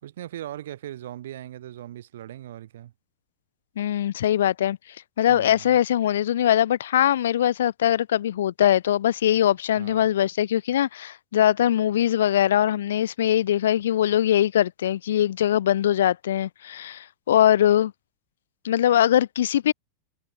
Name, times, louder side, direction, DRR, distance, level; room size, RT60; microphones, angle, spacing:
voice 1, 0.0-2.9 5.3-5.8 9.8-10.1, right 12 dB, 60° right, 4.4 m, -39 dB
voice 2, 3.8-4.8 5.2-17.9 18.6-19.7, left 11 dB, 60° left, 1.1 m, -21 dB
figure-of-eight pair, 90°, 0 cm